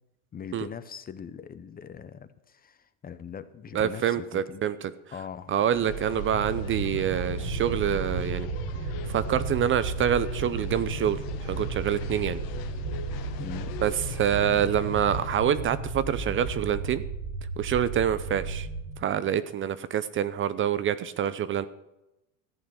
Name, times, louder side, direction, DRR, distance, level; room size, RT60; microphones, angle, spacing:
voice 1, 0.3-4.6 5.1-5.7 13.4-13.8 14.5-14.9, left 7 dB, 25° left, 13 dB, 0.7 m, -41 dB
voice 2, 3.7-4.9 5.5-8.5 9.0-12.4 13.8-17.0 17.6-18.7 19.0-21.7, right 9 dB, 30° right, 14 dB, 0.6 m, -26 dB
sound 1, 5.7-15.3, left 9 dB, 55° left, 1.5 m, -42 dB
sound 2, 5.7-18.9, right 3 dB, 80° right, 5.1 m, -34 dB
14.0 x 8.6 x 6.3 m, 0.93 s
supercardioid pair, 115°, 39 cm